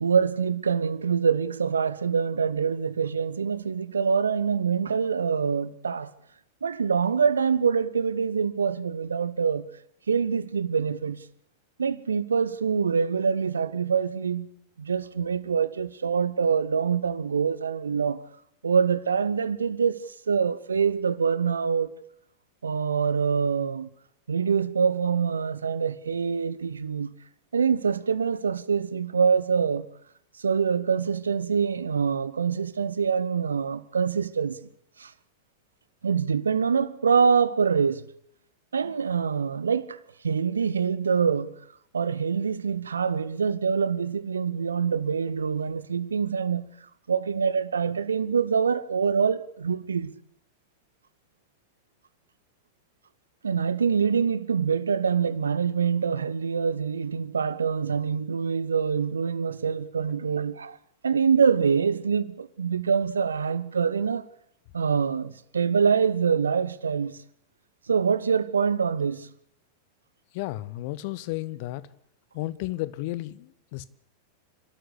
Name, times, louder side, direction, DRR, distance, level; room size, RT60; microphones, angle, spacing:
voice 1, 0.0-6.1 6.6-9.7 10.1-11.2 11.8-14.5 14.8-18.2 18.6-21.9 22.6-23.9 24.3-27.1 27.5-29.9 30.4-34.6 35.0-35.1 36.0-38.1 38.7-40.0 40.2-41.6 41.9-46.7 47.1-50.2 53.4-60.8 61.0-64.3 64.7-67.2 67.9-69.3, right 6 dB, 70° right, 0.9 m, -25 dB
voice 2, 70.3-71.8 72.3-73.8, left 17 dB, 50° left, 1.0 m, -33 dB
28.0 x 13.0 x 8.3 m
figure-of-eight pair, 90°, 0 cm